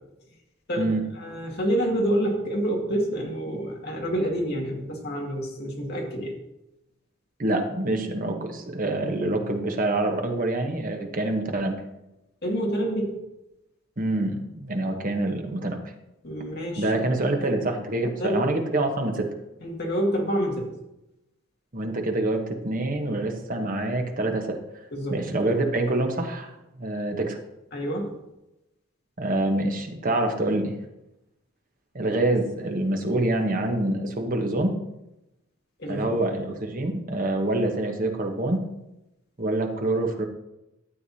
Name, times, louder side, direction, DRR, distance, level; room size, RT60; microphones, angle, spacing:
voice 1, 0.7-6.3 12.4-13.1 16.2-16.9 18.2-18.4 19.6-20.7 24.9-25.2 27.7-28.1 35.8-36.2, equal, 50° left, -1 dB, 2.1 m, -27 dB
voice 2, 7.4-11.8 14.0-15.9 16.8-19.3 21.7-24.6 25.1-26.5 26.8-27.4 29.2-30.8 31.9-34.7 35.9-38.6 39.4-40.3, right 2 dB, 40° right, 4 dB, 1.1 m, -26 dB
12.5 x 8.1 x 2.8 m, 0.91 s
head